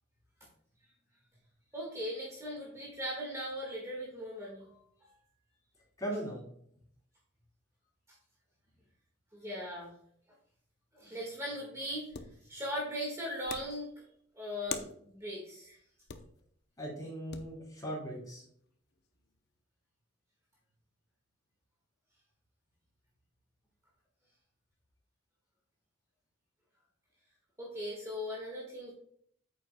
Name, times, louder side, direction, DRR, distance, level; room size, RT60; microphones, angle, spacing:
voice 1, 1.7-5.1 9.3-9.9 11.0-12.1 12.5-13.9 14.4-15.8 27.6-28.9, equal, 15° right, -4 dB, 1.8 m, -39 dB
voice 2, 6.0-6.4 16.8-18.4, right 1 dB, 20° left, -3 dB, 3.4 m, -38 dB
sound 1, 12.1-12.4 13.4-13.8 14.7-15.0 16.1-16.6 17.3-17.6 18.5-19.4, left 6 dB, 55° left, 0.7 m, -42 dB
8.9 x 7.4 x 2.3 m, 0.64 s
head